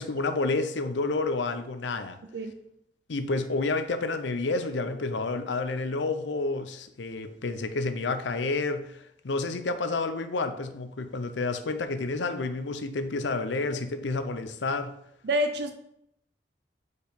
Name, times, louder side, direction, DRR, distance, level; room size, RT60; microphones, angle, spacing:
voice 1, 0.0-2.2 3.1-14.9, left 3 dB, 85° left, 9 dB, 0.6 m, -30 dB
voice 2, 15.2-15.7, equal, 65° right, 7 dB, 0.5 m, -27 dB
4.8 x 4.5 x 5.2 m, 0.75 s
head